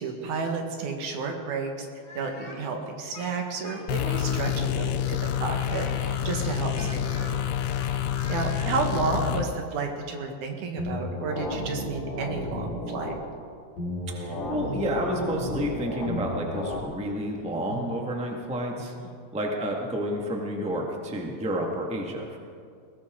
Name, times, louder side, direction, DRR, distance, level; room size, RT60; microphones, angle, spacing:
voice 1, 0.0-1.9 2.2-7.4 7.8-13.1 17.7-17.9 18.8-19.1, right 4 dB, 80° right, 3 dB, 3.0 m, -32 dB
Speech, 2.0-4.9 5.5-8.8, left 2 dB, 25° left, 2.5 m, -46 dB
sound 1, 3.9-9.5, left 10 dB, 85° left, 2.1 m, -28 dB
sound 2, 10.8-13.2 13.8-16.8, left 1 dB, 65° left, 4.1 m, -33 dB
voice 2, 14.1-18.9 19.3-22.4, equal, 5° right, 0 dB, 1.1 m, -30 dB
20.5 x 18.0 x 3.8 m, 2.3 s
omnidirectional pair, 3.4 m